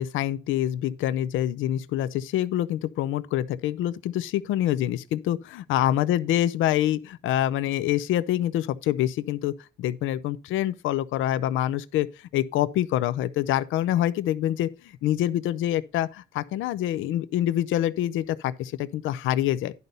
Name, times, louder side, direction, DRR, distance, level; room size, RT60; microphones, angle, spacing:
voice 1, 0.0-19.7, left 12 dB, 85° left, 0.5 m, -26 dB
10.5 x 4.0 x 5.3 m
cardioid pair, 90°, 20 cm